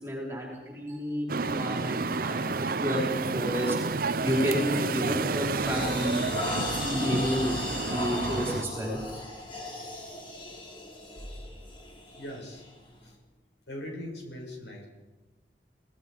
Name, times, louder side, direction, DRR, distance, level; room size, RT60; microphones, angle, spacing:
voice 1, 0.0-3.7 4.2-6.2 6.8-7.5 7.9-9.0, equal, 15° right, -2 dB, 4.8 m, -31 dB
sound 1, 1.3-8.6, right 4 dB, 50° right, 0.6 m, -30 dB
sound 2, 3.5-3.7 4.2-4.5 5.0-13.1, left 1 dB, 30° left, 3.4 m, -37 dB
voice 2, 8.6-9.0 12.2-12.6 13.0-13.2 13.7-14.9, left 1 dB, 80° left, 0 dB, 6.6 m, -41 dB
27.5 x 18.5 x 5.1 m, 1.1 s
head